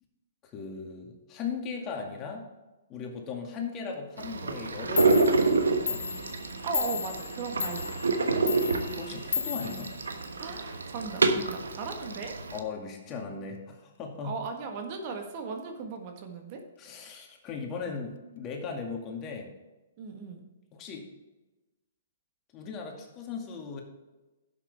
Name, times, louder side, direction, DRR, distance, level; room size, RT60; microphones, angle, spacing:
voice 1, 0.4-2.5 2.9-6.0 8.4-9.9 12.5-14.4 16.8-19.5 20.7-21.1 22.5-23.8, left 5 dB, 30° left, 1 dB, 2.3 m, -38 dB
sound 1, 4.2-12.6, right 3 dB, 75° right, 1.1 m, -28 dB
Clock, 4.7-4.8 5.0-10.6, left 7 dB, 65° left, 0.6 m, -35 dB
voice 2, 6.6-8.0 10.4-12.4 14.2-16.6 20.0-20.5, right 4 dB, 40° right, 3 dB, 1.6 m, -37 dB
11.5 x 7.7 x 3.6 m, 1.1 s
figure-of-eight pair, 120°, 0 cm